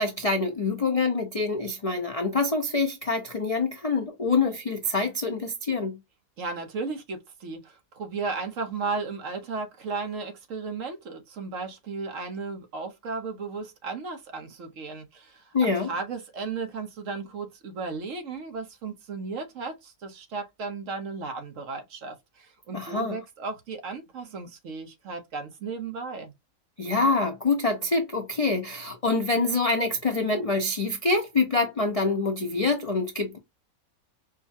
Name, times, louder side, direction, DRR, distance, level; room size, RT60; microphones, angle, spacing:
voice 1, 0.0-6.0 15.5-15.9 22.7-23.2 26.8-33.4, left 3 dB, 50° left, 0.4 m, -26 dB
voice 2, 6.4-26.3, right 4 dB, 65° right, 1.2 m, -35 dB
4.7 x 2.1 x 2.6 m
omnidirectional pair, 1.5 m